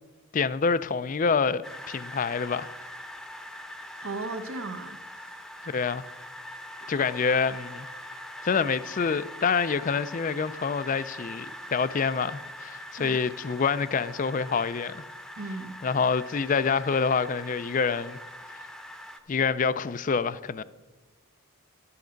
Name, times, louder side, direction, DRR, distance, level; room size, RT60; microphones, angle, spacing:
voice 1, 0.3-2.7 5.7-6.0 6.9-7.9 8.4-15.0 15.8-18.2 18.5-18.6 19.3-20.6, left 5 dB, 35° left, 0.4 m, -27 dB
sound 1, 1.6-19.2, left 1 dB, ahead, 0.8 m, -42 dB
voice 2, 4.0-5.0 13.0-13.2 15.4-15.8, right 3 dB, 75° right, 1.0 m, -36 dB
12.5 x 8.5 x 5.1 m
head